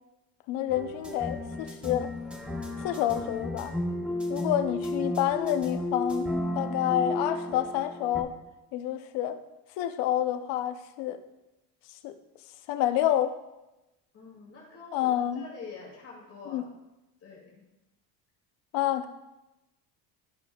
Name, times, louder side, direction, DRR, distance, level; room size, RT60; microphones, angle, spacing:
voice 1, 0.5-2.1 2.8-3.7 4.3-6.3 6.5-8.3 8.7-9.4 9.8-11.2 12.0-12.2 12.7-13.3 14.9-15.4 16.5-16.6 18.7-19.1, left 12 dB, 85° left, 9 dB, 0.8 m, -28 dB
sound 1, 0.7-8.2, left 1 dB, 5° right, 0.6 m, -33 dB
voice 2, 4.1-4.5 14.1-16.6 17.2-17.5, left 4 dB, 35° left, -5 dB, 2.4 m, -46 dB
12.5 x 6.0 x 2.3 m, 0.98 s
cardioid pair, 150°, 41 cm